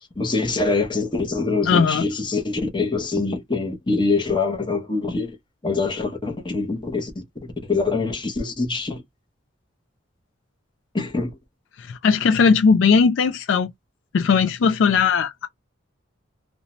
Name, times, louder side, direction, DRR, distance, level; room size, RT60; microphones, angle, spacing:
voice 1, 0.2-5.4 5.6-7.2 7.6-9.0 10.9-11.4, left 3 dB, 25° left, 0.7 m, -24 dB
voice 2, 1.7-2.0 11.8-13.7 14.1-15.5, left 5 dB, 65° left, 0.3 m, -18 dB
2.6 x 2.1 x 2.9 m
head